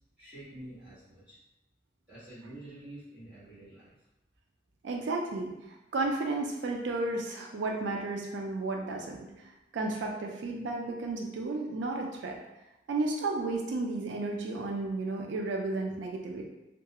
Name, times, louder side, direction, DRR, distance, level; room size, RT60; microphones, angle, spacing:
voice 1, 0.2-1.4 2.1-3.9, right 1 dB, 10° right, -13 dB, 1.2 m, -48 dB
voice 2, 4.8-12.4 12.9-16.5, right 2 dB, 80° right, 1 dB, 0.3 m, -33 dB
2.3 x 2.3 x 2.8 m, 0.95 s
head